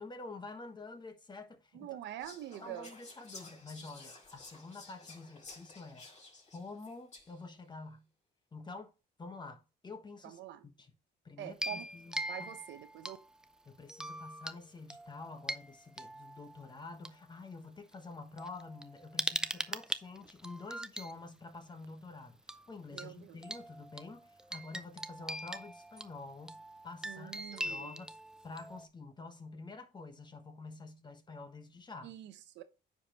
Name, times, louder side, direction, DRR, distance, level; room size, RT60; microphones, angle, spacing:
voice 1, 0.0-2.0 2.6-6.1 6.5-8.1 8.5-8.9 9.2-10.9 11.2-12.2 13.6-22.4 22.7-26.6 26.8-28.1 28.4-32.1, left 3 dB, 25° left, 1.3 m, -48 dB
voice 2, 1.7-2.9 10.2-10.7 11.4-11.9 12.3-13.2 22.9-23.4 27.0-27.9 32.0-32.6, right 12 dB, 75° right, 0.9 m, -45 dB
Whispering, 2.2-7.5, left 3 dB, 40° left, 4.3 m, -53 dB
sound 1, 11.5-13.4 13.9-14.6 14.9-17.1 17.9-18.0 18.4-21.1 22.5-22.7 23.0-23.1 23.4-28.9, right 1 dB, 5° right, 0.4 m, -41 dB
9.6 x 5.1 x 3.0 m
cardioid pair, 115°, 18 cm